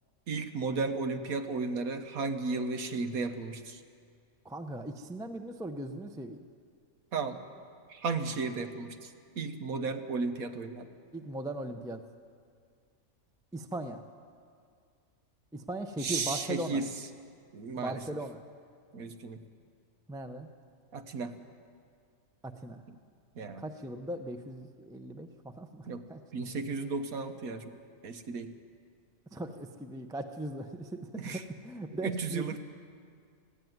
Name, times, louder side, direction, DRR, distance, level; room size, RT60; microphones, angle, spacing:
voice 1, 0.3-3.8 7.1-7.4 7.9-10.9 16.0-17.1 17.5-18.0 18.9-19.4 20.9-21.4 22.9-23.0 23.3-23.6 25.9-26.0 26.3-27.7 28.0-28.5 31.1-31.4 32.0-32.6, right 4 dB, 90° right, 7 dB, 1.6 m, -34 dB
voice 2, 4.4-6.4 11.1-12.0 13.5-14.0 15.5-16.8 17.8-18.4 20.1-20.5 22.4-22.8 23.6-26.2 29.3-32.6, right 1 dB, 5° right, 6 dB, 0.5 m, -39 dB
19.0 x 15.0 x 9.4 m, 2.2 s
omnidirectional pair, 1.5 m